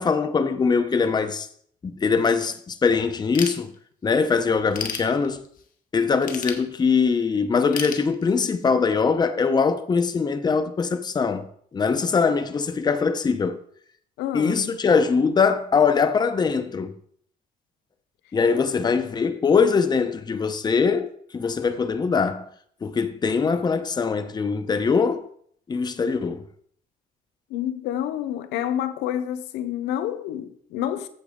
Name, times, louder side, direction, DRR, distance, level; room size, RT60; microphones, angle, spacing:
voice 1, 0.0-1.5 1.8-3.7 4.0-5.4 5.9-11.5 11.7-13.6 14.3-16.9 18.3-21.1 21.3-22.5 22.8-25.2 25.7-26.4, left 5 dB, 25° left, 0.7 m, -22 dB
Ratchet pawl / Tools, 3.3-4.1 4.5-5.7 6.2-7.2 7.7-8.7, left 7 dB, 55° left, 1.3 m, -33 dB
voice 2, 14.2-14.8 27.5-31.1, left 11 dB, 90° left, 0.8 m, -28 dB
8.7 x 7.5 x 3.7 m
cardioid pair, 110°, 17 cm